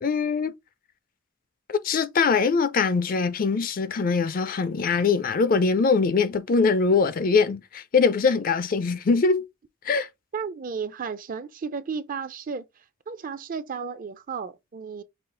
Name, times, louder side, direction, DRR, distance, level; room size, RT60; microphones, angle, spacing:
voice 1, 0.0-0.5 1.7-9.4 9.8-10.1, left 4 dB, 40° left, 0.4 m, -22 dB
voice 2, 10.3-12.7 13.1-15.0, right 5 dB, 40° right, 0.4 m, -33 dB
5.6 x 2.4 x 3.8 m
head